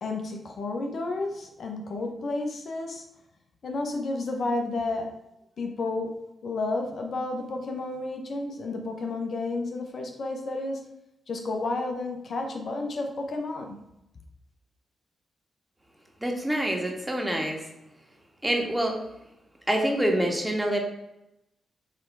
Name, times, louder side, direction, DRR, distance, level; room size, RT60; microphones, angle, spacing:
voice 1, 0.0-3.0 3.6-5.1 5.6-6.1 6.4-10.8 11.3-13.8, left 2 dB, 65° left, 3 dB, 1.0 m, -31 dB
voice 2, 16.2-17.6 18.4-19.0 19.7-20.8, right 1 dB, 10° right, 1 dB, 1.8 m, -26 dB
7.4 x 3.5 x 4.7 m, 0.86 s
supercardioid pair, 55°, 0 cm